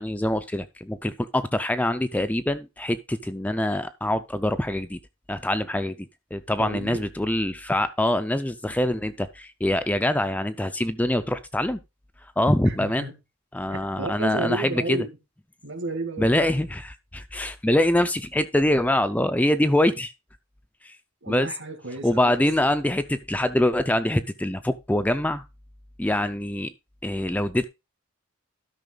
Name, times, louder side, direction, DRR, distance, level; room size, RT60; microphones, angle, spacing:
voice 1, 0.0-5.0 5.3-6.0 6.3-11.8 12.4-13.1 13.5-15.0 16.2-20.1 20.8-20.9 21.3-21.5 22.0-25.4 26.0-26.7 27.0-27.6, left 1 dB, 5° left, 0.5 m, -24 dB
voice 2, 6.6-7.0 12.7-13.1 13.7-15.1 15.6-16.5 21.2-22.3, right 2 dB, 60° right, 2.0 m, -32 dB
12.5 x 5.7 x 3.9 m
head